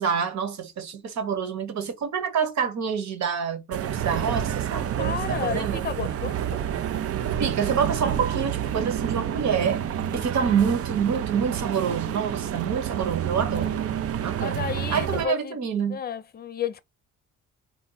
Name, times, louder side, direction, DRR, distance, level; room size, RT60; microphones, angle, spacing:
voice 1, 0.0-5.8 7.4-9.8 10.1-13.8 14.2-14.7 14.9-16.0, right 7 dB, 65° right, 1.3 m, -27 dB
sound 1, 3.7-15.3, right 10 dB, 50° right, 0.5 m, -29 dB
voice 2, 5.0-6.6 13.5-13.8 14.4-15.6 15.9-16.8, left 8 dB, 30° left, 0.6 m, -32 dB
4.3 x 2.2 x 4.0 m
cardioid pair, 90°, 30 cm